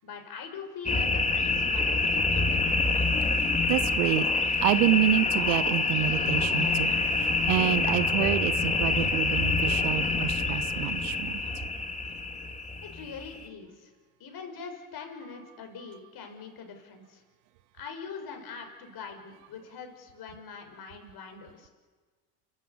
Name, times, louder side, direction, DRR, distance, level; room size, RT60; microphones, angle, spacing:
voice 1, 0.0-2.8 12.8-13.9 14.2-17.2 17.7-21.7, left 5 dB, 45° left, 4 dB, 5.8 m, -43 dB
sound 1, 0.9-13.5, left 3 dB, 15° left, 2.3 m, -26 dB
voice 2, 3.7-4.3 4.6-6.9 7.2-11.4, right 14 dB, 65° right, 14 dB, 1.2 m, -28 dB
29.5 x 12.5 x 8.5 m, 1.4 s
hypercardioid pair, 80°, 50 cm